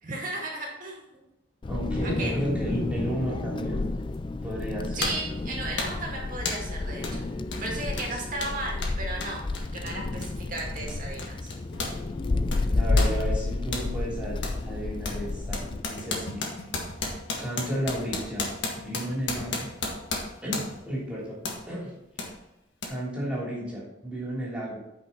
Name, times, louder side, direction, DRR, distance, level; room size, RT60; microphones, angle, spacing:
voice 1, 0.0-1.2 2.0-2.4 4.9-7.3 7.6-9.5 9.7-11.5, right 2 dB, 45° right, -1 dB, 2.2 m, -35 dB
Wind, 1.6-15.8, left 2 dB, 25° left, 0.3 m, -30 dB
voice 2, 1.7-3.9 4.4-4.9 8.0-8.2 12.7-15.6 15.9-16.4 17.4-18.5 18.8-19.7 20.4-21.4 21.7-21.9 22.8-24.8, equal, 5° right, -6 dB, 3.1 m, -33 dB
sound 1, 4.1-4.3 5.0-5.3 5.8-6.1 6.5-6.7 7.0-7.2 7.5-12.0 12.3-13.9 14.4-14.6 15.0-20.9 21.4-21.6 22.2-22.3 22.8-22.9, left 3 dB, 70° left, 1.6 m, -34 dB
9.3 x 5.5 x 4.4 m, 0.91 s
head